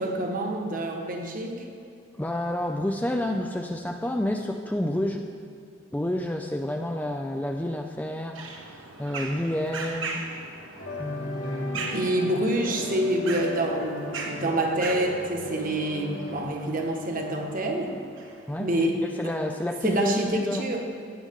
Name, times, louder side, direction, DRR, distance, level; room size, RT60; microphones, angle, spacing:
voice 1, 0.0-1.7 11.9-18.0 18.6-19.0 19.8-20.9, right 1 dB, 45° right, 2 dB, 1.4 m, -27 dB
voice 2, 2.2-5.3 5.9-10.2 11.0-12.0 18.5-18.7 19.1-20.7, left 1 dB, 10° left, 3 dB, 0.4 m, -29 dB
sound 1, 8.3-18.8, right 3 dB, 75° right, 1.5 m, -39 dB
sound 2, 10.8-16.4, left 1 dB, 70° left, 2.0 m, -36 dB
16.5 x 10.5 x 3.7 m, 2.7 s
head